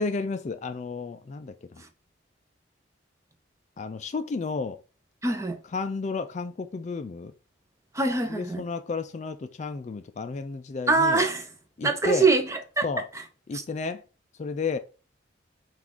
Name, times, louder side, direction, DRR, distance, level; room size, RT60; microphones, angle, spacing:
voice 1, 0.0-1.8 3.8-4.8 5.7-7.3 8.3-11.2 11.8-12.3 12.8-13.1 13.5-14.0 14.4-14.8, left 4 dB, 35° left, 0.3 m, -32 dB
voice 2, 5.2-5.6 7.9-8.6 10.9-11.5 11.8-12.8 13.5-13.6, right 3 dB, 15° right, 0.6 m, -23 dB
5.9 x 2.4 x 3.6 m
head